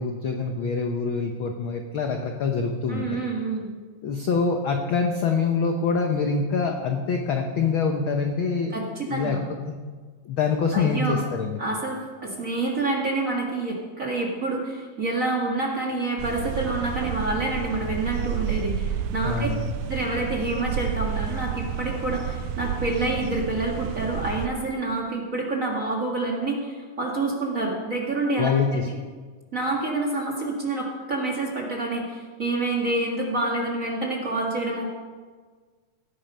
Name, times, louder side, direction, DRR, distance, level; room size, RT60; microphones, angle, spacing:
voice 1, 0.0-3.2 4.0-8.8 9.1-9.4 9.7-9.8 10.3-11.6 19.2-19.6 28.4-28.9, left 5 dB, 70° left, 4 dB, 1.2 m, -25 dB
voice 2, 2.9-3.7 8.7-9.4 10.7-11.2 11.6-19.5 19.8-29.0 29.5-34.9, right 2 dB, 35° right, -1 dB, 1.7 m, -27 dB
sound 1, 16.2-24.5, right 9 dB, 85° right, 2.1 m, -30 dB
17.0 x 9.2 x 5.5 m, 1.5 s
omnidirectional pair, 3.4 m